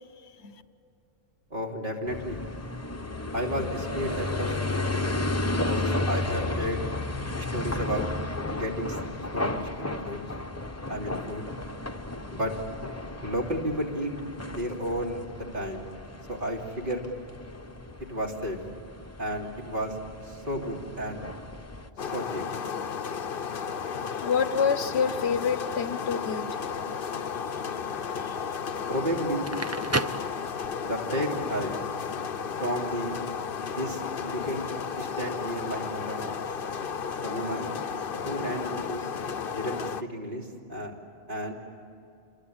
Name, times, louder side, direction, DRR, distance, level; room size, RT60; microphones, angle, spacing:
voice 1, 1.5-2.4 3.3-4.6 5.5-6.9 7.4-8.1 8.5-9.0 9.3-10.2 10.9-11.5 12.3-12.5 13.2-14.1 14.4-15.8 16.3-17.0 18.1-18.6 19.2-19.9 20.3-21.2 22.1-22.4 28.9-29.5 30.8-31.7 32.6-33.2 33.7-34.7 35.0-36.3 37.2-37.7 38.2-39.0 39.5-40.9 41.3-41.5, equal, 55° right, -1 dB, 3.4 m, -32 dB
sound 1, 2.1-21.9, left 2 dB, 15° left, 0.9 m, -33 dB
sound 2, 22.0-40.0, left 6 dB, 60° left, 1.0 m, -33 dB
voice 2, 24.2-26.8 28.2-28.4, left 6 dB, 85° left, 12 dB, 1.2 m, -27 dB
Crackle, 29.3-31.0, right 2 dB, 20° right, 0.6 m, -31 dB
28.0 x 22.0 x 8.8 m, 2.7 s
omnidirectional pair, 1.1 m